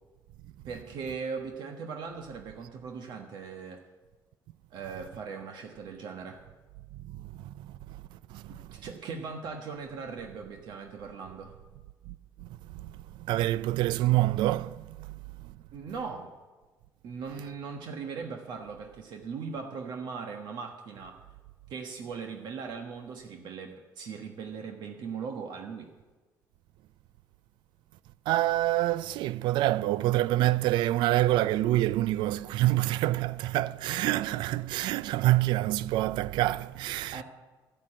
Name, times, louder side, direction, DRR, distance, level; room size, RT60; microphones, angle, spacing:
voice 1, 0.6-3.8 4.7-6.4 8.5-11.5 15.7-16.3 17.0-21.2 21.7-25.9 37.1-37.2, right 5 dB, 70° right, 1.3 m, -39 dB
voice 2, 13.3-14.9 28.3-37.2, right 15 dB, 85° right, 0.4 m, -26 dB
13.5 x 7.4 x 8.7 m
cardioid pair, 100°, 8 cm